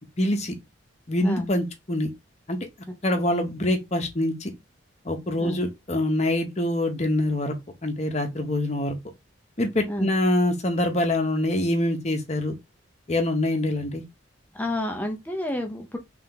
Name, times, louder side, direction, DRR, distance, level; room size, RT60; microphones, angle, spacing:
voice 1, 0.2-0.5 1.1-2.1 2.5-2.6 3.0-4.5 5.0-7.5 7.8-8.9 9.6-12.5 13.1-14.0, left 1 dB, 35° left, 0.9 m, -25 dB
voice 2, 14.5-16.0, left 1 dB, 10° left, 0.7 m, -29 dB
3.4 x 3.2 x 3.8 m
head